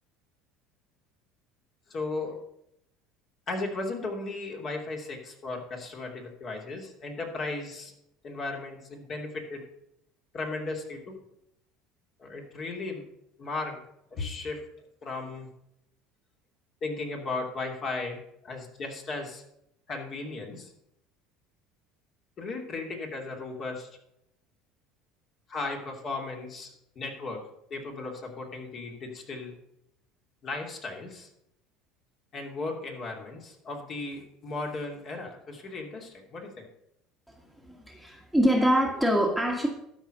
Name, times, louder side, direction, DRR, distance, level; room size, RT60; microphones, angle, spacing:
voice 1, 1.9-2.4 3.5-7.9 8.2-9.6 10.3-11.2 12.2-13.0 13.4-13.8 14.1-14.6 15.0-15.5 16.8-19.4 19.9-20.7 22.4-23.9 25.5-27.4 27.7-29.5 30.4-31.3 32.3-36.7, left 3 dB, 45° left, 1 dB, 2.9 m, -36 dB
voice 2, 37.6-39.7, equal, ahead, 1 dB, 1.6 m, -24 dB
12.5 x 5.0 x 6.6 m, 0.78 s
supercardioid pair, 100°, 0 cm